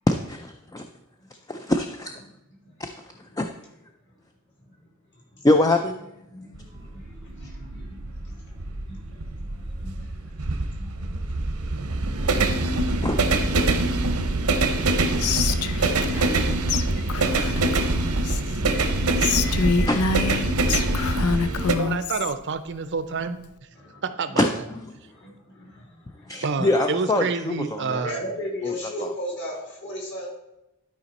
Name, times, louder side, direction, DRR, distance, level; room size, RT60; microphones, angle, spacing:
voice 1, 0.1-0.9 1.5-2.2 2.8-3.1 3.4-3.5 5.4-6.0 13.0-13.2 15.4-16.6 18.7-18.8 19.2-20.0 24.4-24.8 26.3-28.1 28.6-29.1, left 1 dB, 15° left, 6 dB, 0.4 m, -25 dB
sound 1, 6.5-21.7, right 2 dB, 90° right, 0.9 m, -24 dB
voice 2, 7.4-7.8 8.9-9.0 9.8-9.9 10.8-10.9 25.6-25.7 28.0-30.3, left 1 dB, 55° left, -3 dB, 3.0 m, -33 dB
Whispering, 15.2-16.4 16.7-16.8 17.1-18.6 19.2-22.3, left 5 dB, 80° left, 0.5 m, -26 dB
voice 3, 21.8-23.4 24.0-24.5 26.4-28.2, right 4 dB, 50° right, 11 dB, 0.6 m, -28 dB
11.5 x 5.1 x 4.1 m, 0.91 s
head